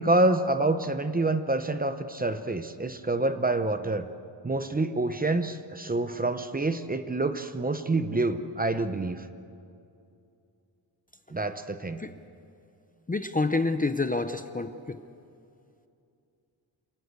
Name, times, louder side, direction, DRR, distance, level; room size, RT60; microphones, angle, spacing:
voice 1, 0.0-4.1 4.4-9.2 11.3-12.0, right 2 dB, 20° right, 9 dB, 0.7 m, -27 dB
voice 2, 13.1-15.0, left 3 dB, 20° left, 8 dB, 0.6 m, -28 dB
27.0 x 18.5 x 8.1 m, 2.6 s
wide cardioid pair, 170°, 46 cm